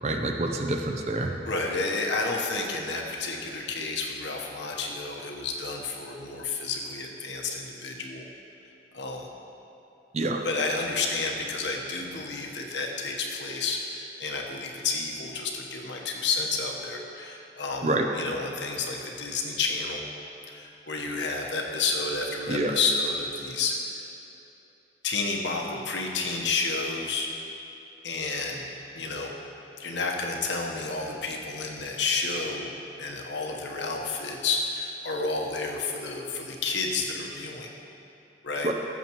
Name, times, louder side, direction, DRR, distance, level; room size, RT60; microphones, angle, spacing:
voice 1, 0.0-1.3 10.1-10.4 17.8-18.1 22.5-22.8 38.6-38.7, right 2 dB, 35° right, 3 dB, 0.6 m, -27 dB
voice 2, 1.4-8.2 8.9-9.3 10.4-20.0 20.4-23.7 25.0-27.3 28.0-28.7 28.9-29.3 29.8-32.7 33.0-37.7 38.4-38.7, left 3 dB, 85° left, 0 dB, 1.1 m, -30 dB
14.0 x 7.3 x 3.0 m, 2.9 s
head